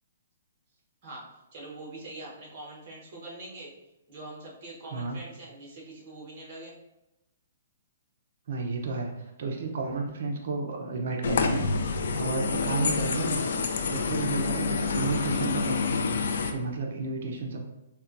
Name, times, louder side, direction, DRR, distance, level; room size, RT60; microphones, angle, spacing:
voice 1, 1.0-3.7 4.1-6.8, right 2 dB, 35° right, -4 dB, 1.0 m, -43 dB
voice 2, 8.5-13.4 13.6-17.7, right 3 dB, 55° right, 2 dB, 0.5 m, -33 dB
sound 1, 11.2-16.5, left 4 dB, 65° left, 0.3 m, -27 dB
4.1 x 2.2 x 2.5 m, 0.94 s
hypercardioid pair, 165°, 0 cm